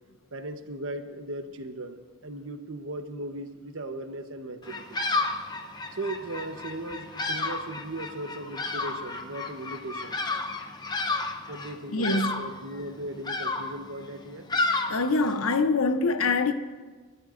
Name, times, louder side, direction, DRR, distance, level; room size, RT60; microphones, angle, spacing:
voice 1, 0.3-5.1 5.9-10.2 11.5-14.4, right 1 dB, 70° right, 1.1 m, -37 dB
Bird vocalization bird call bird song, 4.6-15.6, left 3 dB, 20° left, 0.8 m, -32 dB
voice 2, 11.9-12.5 14.9-16.5, left 3 dB, 85° left, 0.8 m, -24 dB
29.5 x 13.0 x 2.6 m
head